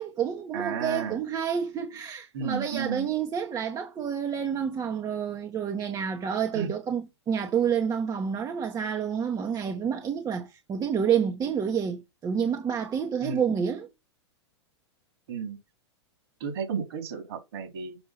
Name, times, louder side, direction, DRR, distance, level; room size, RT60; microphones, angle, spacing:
voice 1, 0.0-13.9, right 7 dB, 25° right, 1.6 m, -29 dB
voice 2, 0.5-1.2 2.3-3.1 6.5-6.7 13.2-13.6 15.3-15.6 16.4-18.0, right 6 dB, 60° right, 3.8 m, -33 dB
7.1 x 5.4 x 6.0 m
hypercardioid pair, 105°, 15 cm